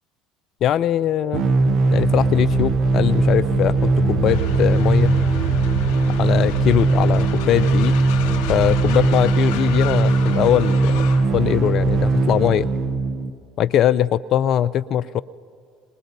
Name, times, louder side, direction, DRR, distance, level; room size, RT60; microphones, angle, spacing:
voice 1, 0.6-1.5 1.9-5.2 6.2-8.0 8.5-11.1 11.3-12.7 13.6-15.2, left 10 dB, 55° left, 14 dB, 0.3 m, -21 dB
sound 1, 1.3-13.3, right 3 dB, 60° right, 0.9 m, -19 dB
sound 2, 2.1-11.5, right 1 dB, 85° right, 1.9 m, -31 dB
Train, 4.3-11.3, left 10 dB, 75° left, 1.0 m, -35 dB
27.0 x 20.0 x 2.7 m, 2.4 s
hypercardioid pair, 70°, 0 cm